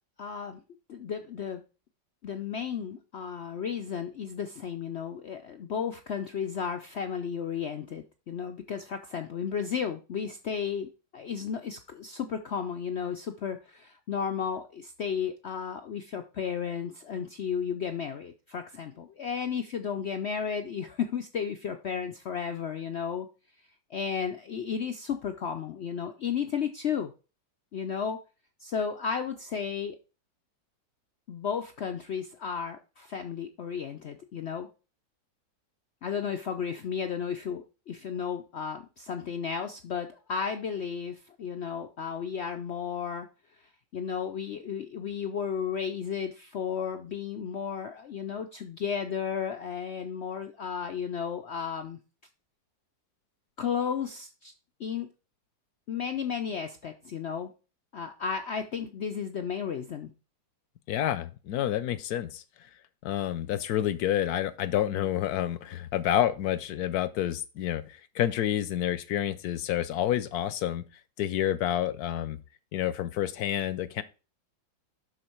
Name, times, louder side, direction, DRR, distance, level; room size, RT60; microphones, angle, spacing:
voice 1, 0.2-0.6 0.9-1.6 2.2-23.3 23.9-27.1 27.7-28.2 28.6-30.0 31.3-34.7 36.0-43.3 43.9-52.0 53.6-54.5 54.8-55.1 55.9-57.5 57.9-60.1, left 7 dB, 85° left, 7 dB, 0.5 m, -33 dB
voice 2, 60.9-62.4 63.0-70.8 71.2-72.4 72.7-74.0, left 11 dB, 70° left, 15 dB, 1.0 m, -29 dB
11.5 x 4.5 x 4.4 m, 0.33 s
omnidirectional pair, 2.0 m